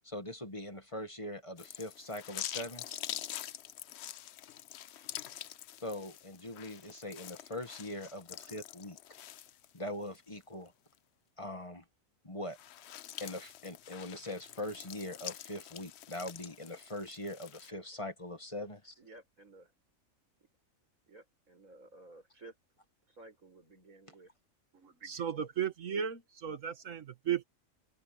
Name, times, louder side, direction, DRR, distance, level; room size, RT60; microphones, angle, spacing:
voice 1, 0.0-3.0 5.8-9.0 9.7-10.7 11.4-11.8 12.2-12.6 13.2-18.9, left 1 dB, 25° left, 1.7 m, -42 dB
sound 1, 1.6-10.2 10.6-10.7 12.4-17.7, left 11 dB, 60° left, 0.8 m, -46 dB
voice 2, 19.0-19.7 21.1-22.6 23.1-24.3, right 2 dB, 85° right, 7.1 m, -55 dB
voice 3, 24.8-27.4, right 8 dB, 70° right, 1.6 m, -35 dB
omnidirectional pair, 1.4 m